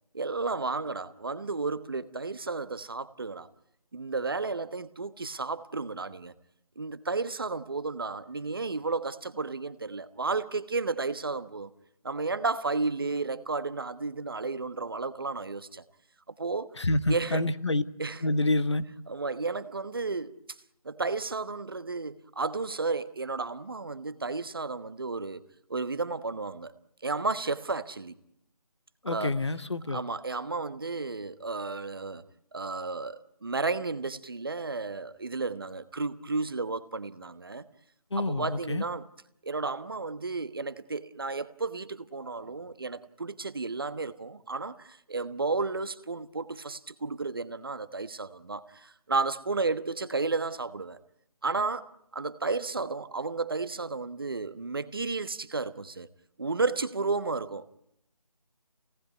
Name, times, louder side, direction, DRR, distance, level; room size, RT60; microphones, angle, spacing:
voice 1, 0.1-3.5 3.9-6.3 6.8-11.7 12.0-15.8 16.3-16.7 17.1-17.4 18.0-18.2 19.1-20.3 20.8-25.4 25.7-26.7 27.0-28.1 29.1-29.3 29.9-32.2 32.5-37.7 38.1-39.0 39.4-51.0 51.4-56.1 56.4-57.8, right 3 dB, 40° right, 1.2 m, -32 dB
voice 2, 16.8-17.8 18.2-18.8 29.0-30.0 38.1-38.8, left 2 dB, 50° left, 1.3 m, -27 dB
28.0 x 18.5 x 9.4 m
figure-of-eight pair, 160°, 19 cm